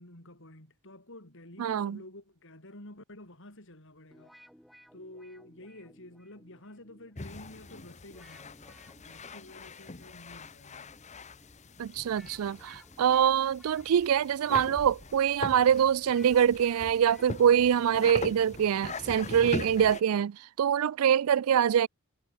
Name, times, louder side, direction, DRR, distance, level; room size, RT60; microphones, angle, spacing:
voice 1, 0.0-4.3 4.9-11.0, left 1 dB, 60° left, 5.9 m, -50 dB
voice 2, 1.6-2.0 11.8-21.9, right 9 dB, 70° right, 0.3 m, -24 dB
sound 1, 4.1-20.0, equal, ahead, 3.7 m, -60 dB
sound 2, 7.1-20.0, left 3 dB, 30° left, 0.9 m, -42 dB
head